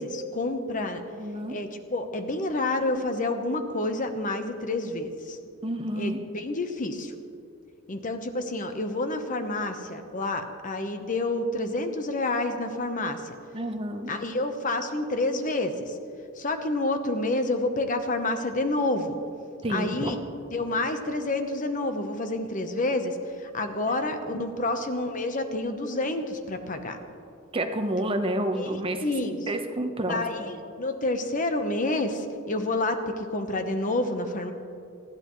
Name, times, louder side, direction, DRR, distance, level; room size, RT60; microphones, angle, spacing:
voice 1, 0.0-1.0 1.5-5.4 6.0-7.1 7.9-13.4 14.1-16.0 16.4-19.2 19.7-20.2 20.5-27.0 28.5-29.4 30.1-34.5, left 2 dB, 40° left, 7 dB, 0.9 m, -29 dB
voice 2, 1.1-1.6 5.6-6.2 13.5-14.1 19.6-20.1 23.9-24.0 24.3-24.4 27.5-29.0 29.5-30.5, right 1 dB, 25° right, 6 dB, 1.0 m, -29 dB
20.0 x 14.0 x 3.1 m, 2.5 s
head